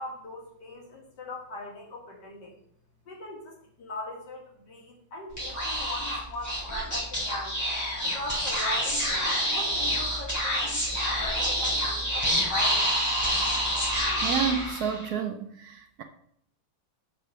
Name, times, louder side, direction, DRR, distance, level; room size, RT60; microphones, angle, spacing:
voice 1, 0.0-2.6 3.1-7.6 8.0-12.8, left 2 dB, 65° left, -1 dB, 2.5 m, -40 dB
Speech / Whispering, 5.3-15.1, equal, 10° left, 3.5 m, -28 dB
voice 2, 14.2-16.0, right 7 dB, 70° right, 7 dB, 1.0 m, -30 dB
6.3 x 5.7 x 6.0 m, 0.68 s
omnidirectional pair, 2.0 m